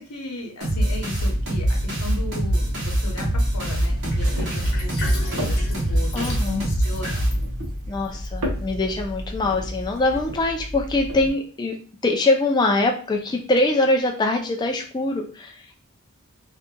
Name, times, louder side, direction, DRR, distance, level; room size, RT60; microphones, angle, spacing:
voice 1, 0.0-7.3, left 2 dB, 85° left, 1 dB, 0.8 m, -35 dB
sound 1, 0.6-7.8, right 1 dB, 50° right, 0.9 m, -24 dB
sound 2, 3.2-11.3, equal, 90° right, 0.8 m, -33 dB
Sink (filling or washing), 4.1-8.8, left 1 dB, 60° left, 0.9 m, -37 dB
voice 2, 6.1-6.7 7.9-11.8 12.0-15.7, left 2 dB, 20° left, 2 dB, 0.3 m, -23 dB
2.7 x 2.4 x 2.2 m, 0.40 s
head